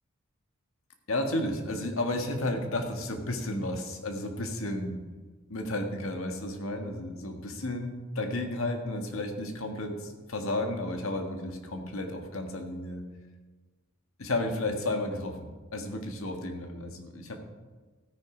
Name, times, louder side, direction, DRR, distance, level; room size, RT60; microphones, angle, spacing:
voice 1, 1.1-5.0 5.5-13.0 14.2-17.4, left 1 dB, 80° left, 4 dB, 1.7 m, -32 dB
14.0 x 9.3 x 5.1 m, 1.3 s
head